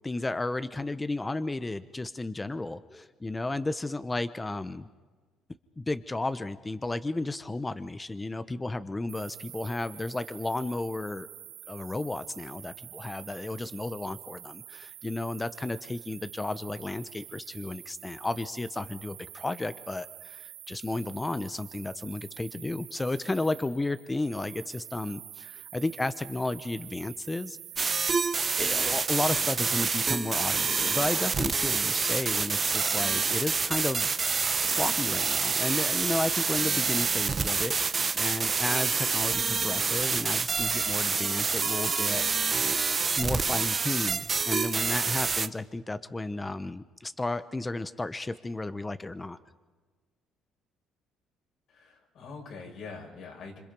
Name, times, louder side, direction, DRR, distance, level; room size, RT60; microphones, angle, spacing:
voice 1, 0.0-4.9 5.8-11.3 11.7-27.6 28.6-34.1 34.6-42.6 43.2-49.4, left 2 dB, 15° left, 12 dB, 0.9 m, -33 dB
sound 1, 9.1-28.1, right 12 dB, 85° right, 1.7 m, -47 dB
sound 2, 27.8-45.5, right 5 dB, 35° right, 0.9 m, -27 dB
voice 2, 51.7-53.6, left 4 dB, 70° left, 0 dB, 6.3 m, -44 dB
27.0 x 26.0 x 5.4 m, 1.4 s
supercardioid pair, 85°, 0 cm